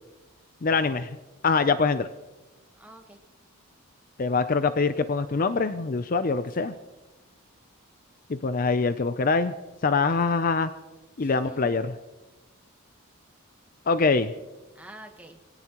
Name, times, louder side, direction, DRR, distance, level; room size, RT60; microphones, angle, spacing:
voice 1, 0.6-1.1 1.4-2.1 4.2-6.7 8.3-9.5 9.8-10.7 11.2-11.8 13.9-14.3, left 4 dB, 40° left, 11 dB, 0.5 m, -24 dB
voice 2, 2.8-3.2 6.4-6.7 10.1-10.6 11.2-11.7 14.7-15.4, right 1 dB, 5° right, 3 dB, 1.3 m, -48 dB
22.5 x 17.0 x 3.0 m, 1.1 s
head